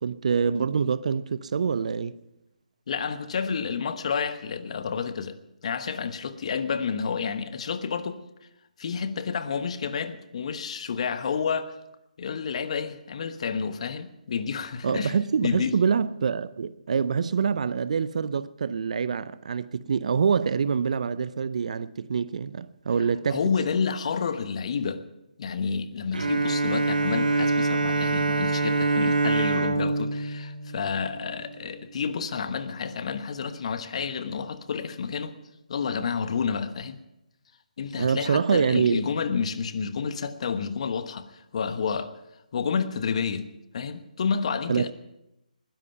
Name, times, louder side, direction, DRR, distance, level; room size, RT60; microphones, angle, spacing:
voice 1, 0.0-2.2 14.8-23.4 38.0-39.1 44.7-44.9, right 6 dB, 55° right, 0.6 m, -25 dB
voice 2, 2.9-5.4 5.6-8.2 8.8-11.7 12.2-15.2 15.4-15.7 23.3-25.0 25.4-35.3 35.7-37.0 37.8-42.1 42.5-43.4 43.7-44.9, left 6 dB, 50° left, 1.1 m, -30 dB
Bowed string instrument, 26.1-31.6, right 3 dB, 80° right, 1.4 m, -25 dB
20.0 x 10.5 x 5.7 m
figure-of-eight pair, 150°, 4 cm